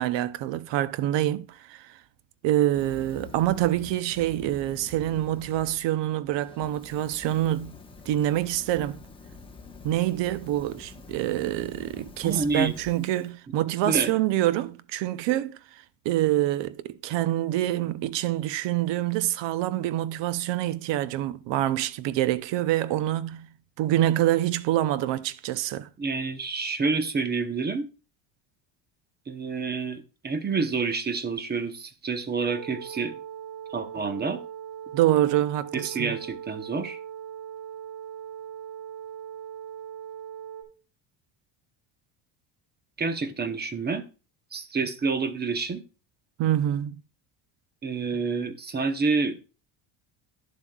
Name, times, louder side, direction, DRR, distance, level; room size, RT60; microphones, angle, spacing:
voice 1, 0.0-2.0 2.4-7.7 8.1-9.0 9.8-15.6 16.0-23.5 23.8-25.9 34.9-36.2 46.4-47.0, right 13 dB, 65° right, 0.7 m, -26 dB
Fire, 2.7-5.8 6.2-13.3, left 4 dB, 10° left, 1.1 m, -47 dB
voice 2, 12.2-13.1 13.9-14.1 26.0-27.9 29.3-33.1 33.7-34.4 35.7-37.0 43.0-44.0 44.5-45.8 47.8-49.4, right 4 dB, 20° right, 0.8 m, -28 dB
sound 1, 32.5-40.6, right 9 dB, 35° right, 2.2 m, -40 dB
11.0 x 7.3 x 2.3 m
cardioid pair, 130°, 47 cm